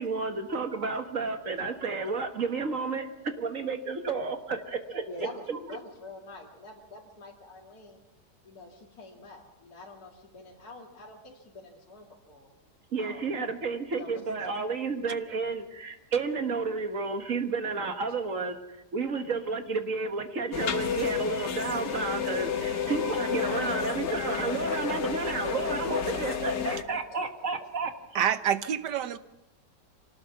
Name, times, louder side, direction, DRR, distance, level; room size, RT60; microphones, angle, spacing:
voice 1, 0.0-3.1 3.4-5.1 5.5-5.6 12.9-18.6 18.9-27.9, right 4 dB, 50° right, 6 dB, 1.8 m, -31 dB
voice 2, 5.1-5.4 5.7-8.0 8.4-12.5 13.0-13.3 14.0-14.3 26.4-27.7, left 2 dB, 60° left, -2 dB, 2.7 m, -46 dB
sound 1, 20.5-26.8, left 7 dB, 80° left, 2.1 m, -31 dB
voice 3, 28.1-29.2, right 9 dB, 80° right, 12 dB, 1.5 m, -27 dB
25.0 x 19.0 x 5.9 m, 0.95 s
omnidirectional pair, 1.8 m